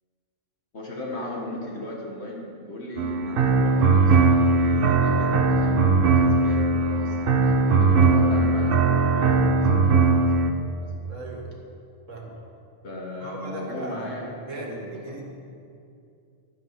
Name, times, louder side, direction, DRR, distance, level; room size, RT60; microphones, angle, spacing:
voice 1, 0.7-11.1 12.8-15.2, left 1 dB, 55° left, -2 dB, 1.7 m, -37 dB
sound 1, 3.0-10.5, right 4 dB, 50° right, 0.8 m, -19 dB
voice 2, 11.1-11.5 12.1-12.4 13.2-15.2, right 2 dB, 65° right, 0 dB, 2.1 m, -37 dB
11.5 x 9.1 x 5.8 m, 2.5 s
omnidirectional pair, 1.4 m